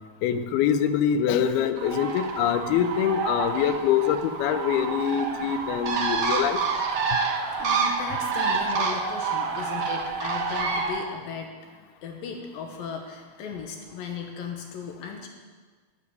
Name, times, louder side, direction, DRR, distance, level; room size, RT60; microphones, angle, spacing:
voice 1, 0.2-6.6, left 9 dB, 90° left, 10 dB, 2.7 m, -24 dB
Bird, 1.8-11.0, right 5 dB, 90° right, 1.1 m, -28 dB
voice 2, 7.5-11.5 12.0-15.3, left 5 dB, 70° left, 3 dB, 2.7 m, -36 dB
12.0 x 7.4 x 9.6 m, 1.5 s
omnidirectional pair, 4.4 m